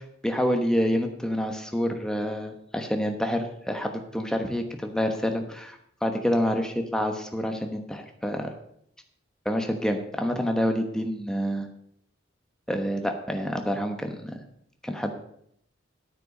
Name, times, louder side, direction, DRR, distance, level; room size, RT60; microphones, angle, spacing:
voice 1, 0.2-8.5 9.4-11.7 12.7-14.4 14.8-15.2, equal, 5° left, 4 dB, 1.0 m, -27 dB
9.9 x 9.0 x 5.3 m, 0.70 s
head